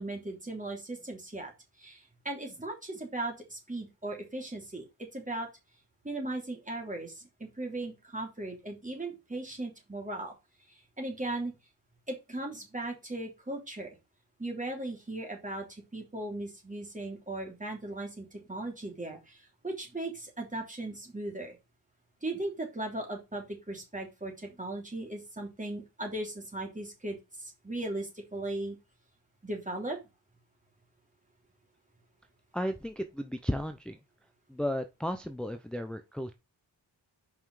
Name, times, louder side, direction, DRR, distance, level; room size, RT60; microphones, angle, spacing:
voice 1, 0.0-1.5 1.8-4.8 5.1-5.5 6.0-10.3 11.0-11.5 12.1-13.9 14.4-21.6 22.2-28.8 29.4-30.0, right 2 dB, 15° right, 3.2 m, -37 dB
voice 2, 32.5-34.0 34.5-36.3, equal, ahead, 0.6 m, -34 dB
5.6 x 5.5 x 4.8 m
wide cardioid pair, 110°, 43 cm